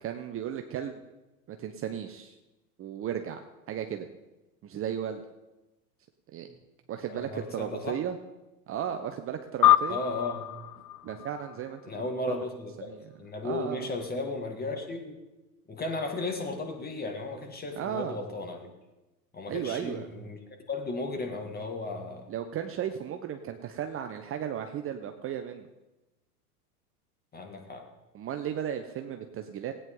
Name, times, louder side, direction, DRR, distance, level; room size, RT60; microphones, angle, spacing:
voice 1, 0.0-1.0 1.5-2.3 2.8-3.4 3.7-4.1 4.6-5.2 6.3-6.5 6.9-8.2 8.7-10.0 11.0-11.8 12.3-12.4 12.8-13.1 13.4-13.9 17.8-18.2 19.5-20.0 22.3-25.7 28.1-29.7, right 9 dB, 30° right, 6 dB, 0.8 m, -35 dB
voice 2, 7.1-8.0 9.9-10.5 11.9-15.2 15.7-18.6 19.3-20.4 20.7-22.3 27.3-27.8, left 2 dB, 20° left, 3 dB, 2.2 m, -35 dB
sound 1, 9.6-12.4, left 13 dB, 75° left, 0.7 m, -26 dB
16.5 x 9.4 x 3.9 m, 1.1 s
hypercardioid pair, 100°, 47 cm